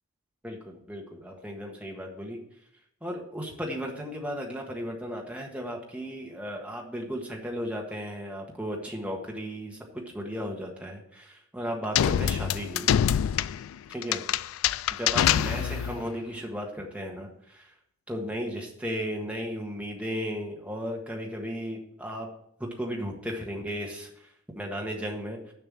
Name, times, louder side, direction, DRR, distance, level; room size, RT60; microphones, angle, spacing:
voice 1, 0.4-2.4 3.0-12.9 13.9-14.2 14.9-17.7 18.1-22.3 22.6-25.5, equal, 5° right, 0 dB, 1.6 m, -35 dB
sound 1, 11.9-16.0, left 10 dB, 85° left, 0.3 m, -25 dB
7.1 x 5.8 x 7.1 m, 0.71 s
head